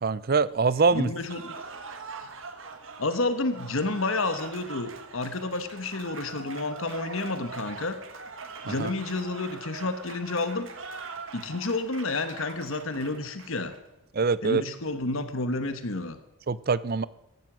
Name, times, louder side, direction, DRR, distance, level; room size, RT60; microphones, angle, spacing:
voice 1, 0.0-1.1 8.7-8.9 14.1-14.6 16.5-17.0, right 4 dB, 45° right, 18 dB, 0.5 m, -24 dB
voice 2, 0.9-1.5 3.0-8.0 8.6-10.7 11.3-13.7 14.4-16.2, left 2 dB, 65° left, 10 dB, 1.2 m, -30 dB
Cheering / Applause, 1.2-13.8, right 4 dB, 60° right, 1.7 m, -42 dB
15.0 x 12.5 x 6.2 m, 0.93 s
head